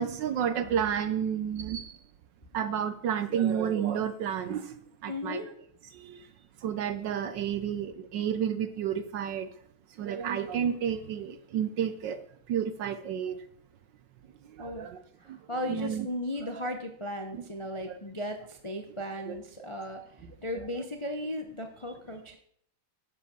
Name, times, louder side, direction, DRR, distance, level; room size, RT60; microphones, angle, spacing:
voice 1, 0.0-1.9 2.5-4.8 5.0-5.4 5.9-6.2 6.6-9.5 10.0-12.2 12.5-13.4 14.6-15.0 15.3-15.4 15.7-16.1 16.4-16.7 17.3-17.5 17.8-18.0 19.3-19.4 20.2-20.8, right 8 dB, 70° right, 11 dB, 1.1 m, -31 dB
voice 2, 5.1-5.5 14.6-14.9 15.2-20.0 20.4-22.4, left 1 dB, 35° left, 4 dB, 0.5 m, -36 dB
10.5 x 7.5 x 6.1 m, 0.64 s
omnidirectional pair, 2.4 m